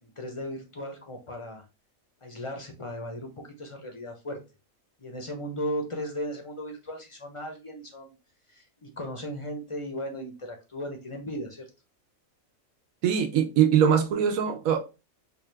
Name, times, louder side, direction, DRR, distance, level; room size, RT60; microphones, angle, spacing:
voice 1, 0.0-1.6 2.2-4.4 5.0-8.1 8.5-11.6, equal, 40° left, 0.4 m, -36 dB
voice 2, 13.0-14.8, right 8 dB, 90° right, 1.1 m, -22 dB
4.6 x 2.3 x 3.2 m
omnidirectional pair, 1.4 m